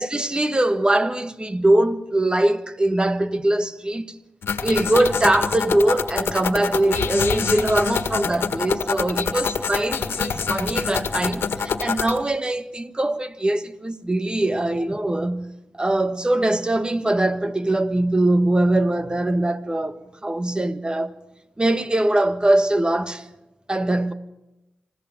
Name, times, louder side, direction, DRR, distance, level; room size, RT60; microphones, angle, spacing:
voice 1, 0.0-4.1 4.6-15.5 15.8-21.1 21.6-23.3 23.7-24.1, right 1 dB, 20° right, 1.5 m, -22 dB
sound 1, 4.4-12.2, left 6 dB, 80° left, 1.7 m, -26 dB
27.0 x 16.0 x 7.4 m
cardioid pair, 50°, 4 cm